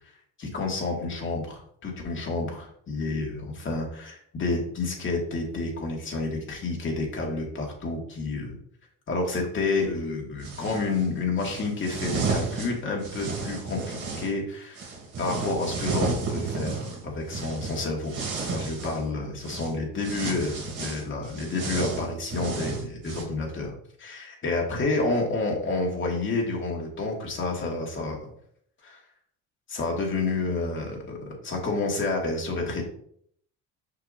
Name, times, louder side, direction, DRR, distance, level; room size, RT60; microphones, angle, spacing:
voice 1, 0.4-8.5 9.1-14.9 15.2-18.2 18.5-23.7 24.0-28.3 28.8-29.0 29.7-32.8, left 3 dB, 35° left, -1 dB, 2.0 m, -29 dB
sound 1, 10.4-10.9 11.4-14.3 14.7-19.0 19.4-19.7 20.0-23.2, right 4 dB, 45° right, 2.3 m, -32 dB
6.6 x 5.9 x 2.7 m, 0.65 s
cardioid pair, 135°, 34 cm